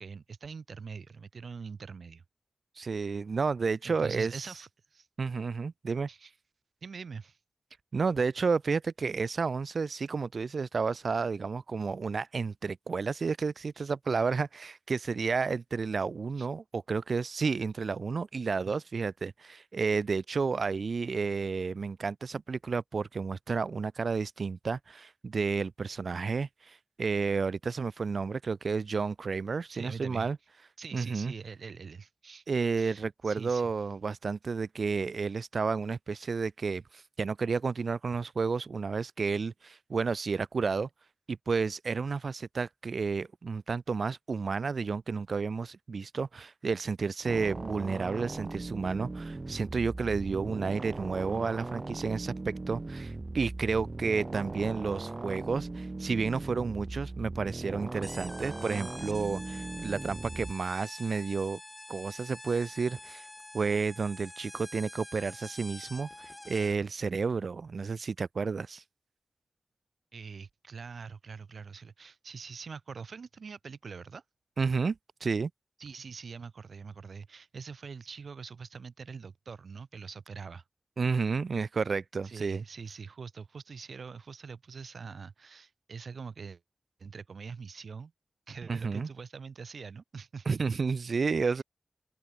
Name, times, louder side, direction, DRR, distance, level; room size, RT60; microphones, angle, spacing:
voice 1, 0.0-2.2 3.8-5.1 6.1-6.3 6.8-7.4 13.8-13.9 16.4-16.5 18.7-18.8 29.7-30.3 30.8-32.4 32.8-33.7 70.1-74.2 75.8-80.6 82.2-86.6 87.0-88.1 88.5-90.5, right 5 dB, 85° right, 1.9 m, -44 dB
voice 2, 2.8-4.3 5.2-6.1 7.9-30.4 30.9-31.3 32.5-40.9 41.3-61.6 61.9-63.2 63.5-66.1 66.5-68.8 74.6-75.5 81.0-82.6 88.7-89.1 90.5-91.6, right 4 dB, 70° right, 0.6 m, -31 dB
sound 1, 47.3-60.5, right 2 dB, 35° right, 1.0 m, -39 dB
sound 2, 58.0-66.9, left 1 dB, 15° left, 4.3 m, -47 dB
open air
wide cardioid pair, 110°, 0 cm